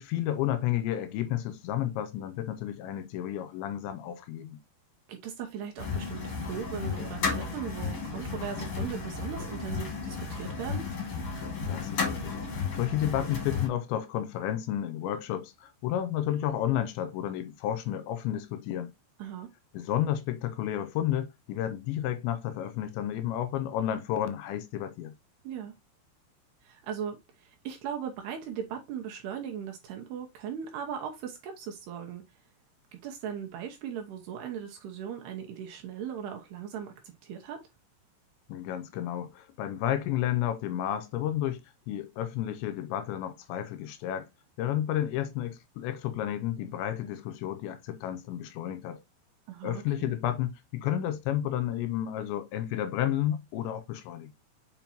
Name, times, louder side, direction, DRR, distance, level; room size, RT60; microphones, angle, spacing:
voice 1, 0.0-4.6 11.7-18.9 19.7-25.1 38.5-41.6 41.9-44.3 44.6-49.0 49.6-54.3, left 11 dB, 80° left, 2.8 m, -31 dB
voice 2, 5.1-10.9 19.2-19.5 25.4-25.7 26.6-32.2 32.9-37.7 49.5-50.2, right 8 dB, 75° right, 2.6 m, -38 dB
sound 1, 5.8-13.7, left 5 dB, 45° left, 2.0 m, -33 dB
7.2 x 5.2 x 2.9 m
omnidirectional pair, 5.5 m